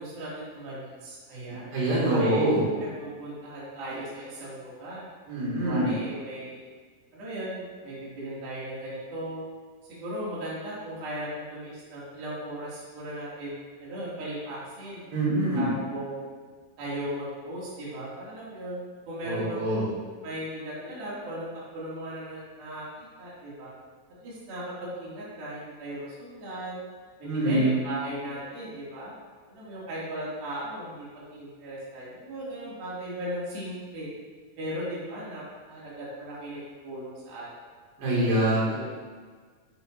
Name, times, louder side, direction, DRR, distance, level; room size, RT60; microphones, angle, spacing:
voice 1, 0.0-1.7 2.0-2.4 3.0-5.1 5.6-6.6 7.1-9.4 9.8-15.1 15.5-16.2 16.8-19.8 20.2-21.5 21.7-23.7 24.2-26.8 27.2-29.1 29.5-34.1 34.6-37.7 38.7-38.8, right 1 dB, 65° right, -8 dB, 4.4 m, -37 dB
voice 2, 1.7-2.6 5.3-5.9 15.1-15.7 19.2-19.9 27.2-27.7 38.0-38.8, right 1 dB, 85° right, -6 dB, 4.7 m, -25 dB
13.5 x 9.2 x 2.8 m, 1.5 s
omnidirectional pair, 4.6 m